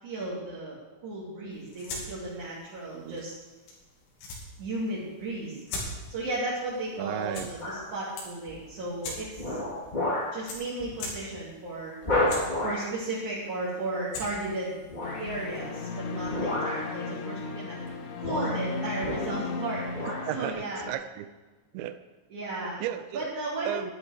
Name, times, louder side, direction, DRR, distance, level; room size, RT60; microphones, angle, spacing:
voice 1, 0.0-3.3 4.6-5.6 6.1-9.6 10.3-12.0 12.6-14.9 15.2-17.8 18.2-20.9 22.3-22.8 23.1-23.7, right 2 dB, 45° right, -7 dB, 3.5 m, -34 dB
sound 1, 1.5-15.9, left 2 dB, 85° left, 5.4 m, -44 dB
voice 2, 2.9-3.3 7.0-7.5 19.8-19.9 20.3-21.3 21.7-22.0 22.8-23.3 23.7-23.9, right 12 dB, 80° right, 10 dB, 2.7 m, -34 dB
sound 2, 7.6-7.9 8.5-8.8 9.3-10.4 10.8-11.0 11.3-11.4 12.0-12.9 14.9-15.3 16.2-16.9 17.8-17.9 18.2-19.6 19.9-20.3 20.8-20.9, left 1 dB, 35° left, 0.7 m, -31 dB
sound 3, 15.0-20.5, left 4 dB, 70° left, 3.5 m, -35 dB
12.5 x 11.0 x 4.9 m, 1.2 s
omnidirectional pair, 5.6 m